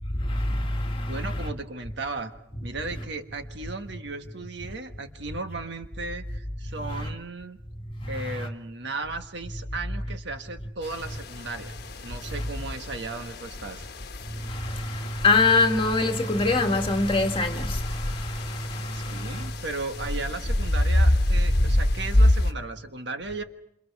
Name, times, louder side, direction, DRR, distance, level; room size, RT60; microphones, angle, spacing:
voice 1, 0.2-1.5 6.9-7.1 8.0-8.5 12.3-12.4 14.4-19.5, left 3 dB, 30° left, 2.1 m, -25 dB
voice 2, 1.0-2.3 2.6-7.6 8.1-11.7 12.0-13.9 18.9-23.4, right 3 dB, 65° right, 1.5 m, -36 dB
sound 1, 10.8-22.5, left 1 dB, 60° left, 1.3 m, -27 dB
28.0 x 27.5 x 4.8 m
head